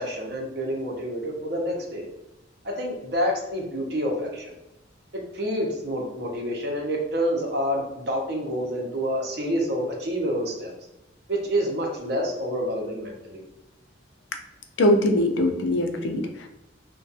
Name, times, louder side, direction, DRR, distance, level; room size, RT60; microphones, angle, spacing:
voice 1, 0.0-2.0 2.6-4.5 5.3-10.7 11.3-13.4, equal, 60° right, 0 dB, 0.7 m, -28 dB
voice 2, 14.8-16.5, left 1 dB, 70° left, 5 dB, 0.4 m, -22 dB
2.3 x 2.2 x 2.6 m, 0.92 s
head